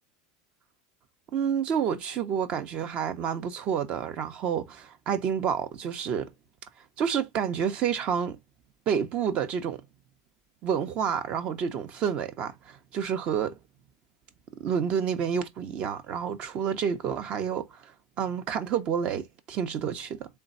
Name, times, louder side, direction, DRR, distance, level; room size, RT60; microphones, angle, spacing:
voice 1, 1.3-6.3 7.0-8.4 8.9-9.8 10.6-13.6 14.6-20.3, right 7 dB, 40° right, 1.0 m, -29 dB
3.9 x 3.4 x 4.0 m
supercardioid pair, 135°, 3 cm